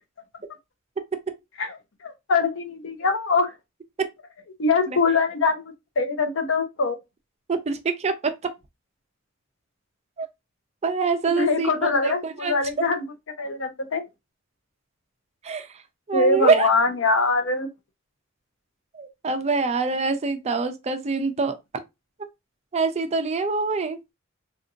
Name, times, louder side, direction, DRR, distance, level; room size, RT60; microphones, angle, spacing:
voice 1, 2.0-3.5 4.6-5.6 6.0-7.0 11.3-13.1 13.4-14.0 16.1-17.7, left 3 dB, 65° left, 0.7 m, -23 dB
voice 2, 7.5-8.3 10.2-10.3 10.8-12.5 15.4-15.7 16.1-16.7 18.9-21.6 22.7-24.0, right 4 dB, 30° right, 0.4 m, -25 dB
3.5 x 2.6 x 2.6 m
head